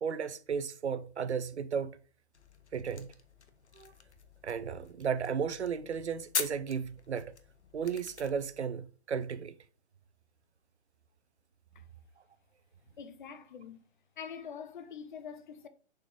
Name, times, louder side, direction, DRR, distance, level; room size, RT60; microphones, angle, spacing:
voice 1, 0.0-2.0 2.7-3.1 3.7-3.9 4.4-7.3 7.7-9.5, right 6 dB, 80° right, 0.7 m, -34 dB
sound 1, 2.3-8.6, left 6 dB, 80° left, 1.0 m, -43 dB
voice 2, 13.0-13.8 14.2-15.7, left 7 dB, 45° left, 0.8 m, -44 dB
6.3 x 4.7 x 3.4 m
figure-of-eight pair, 140°, 33 cm